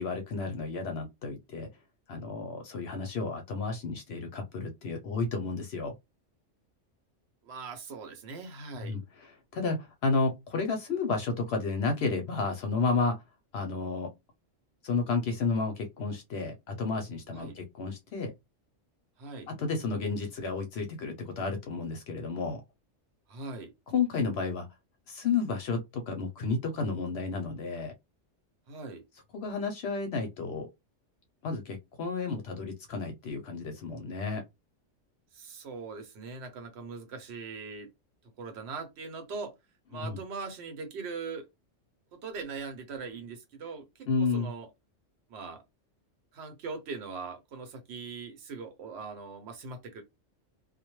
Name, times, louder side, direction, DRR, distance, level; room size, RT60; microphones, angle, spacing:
voice 1, 0.0-1.7 2.1-5.9 8.8-13.2 13.5-14.1 14.8-18.3 19.5-22.6 23.9-24.7 25.1-27.9 29.3-30.7 31.4-34.4 39.9-40.2 44.1-44.5, left 4 dB, 65° left, 0.8 m, -32 dB
voice 2, 7.4-8.9 17.3-17.6 19.2-19.5 23.3-23.7 28.7-29.1 35.3-37.9 38.4-39.5 39.9-41.5 42.1-44.7 45.3-45.6 46.3-50.0, right 4 dB, 65° right, 0.9 m, -41 dB
2.2 x 2.1 x 2.9 m
omnidirectional pair, 1.3 m